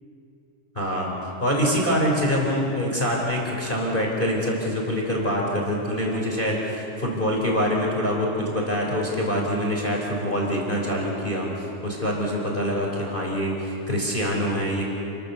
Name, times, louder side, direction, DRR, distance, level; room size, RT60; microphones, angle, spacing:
voice 1, 0.7-11.5 11.8-14.8, equal, 15° left, -1 dB, 4.2 m, -25 dB
29.5 x 23.5 x 7.0 m, 2.9 s
omnidirectional pair, 3.7 m